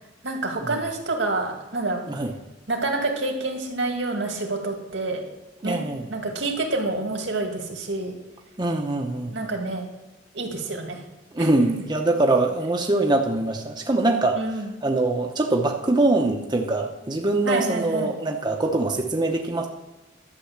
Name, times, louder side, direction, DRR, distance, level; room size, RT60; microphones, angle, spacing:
voice 1, 0.2-2.1 2.7-5.2 5.6-5.8 6.1-8.2 9.3-9.9 10.3-11.0 11.4-11.8 14.3-14.7 17.5-18.1, right 2 dB, 75° right, 2 dB, 2.3 m, -28 dB
voice 2, 5.6-6.1 8.6-9.4 11.3-19.7, right 2 dB, 25° right, 2 dB, 0.9 m, -23 dB
11.5 x 7.1 x 7.2 m, 1.1 s
head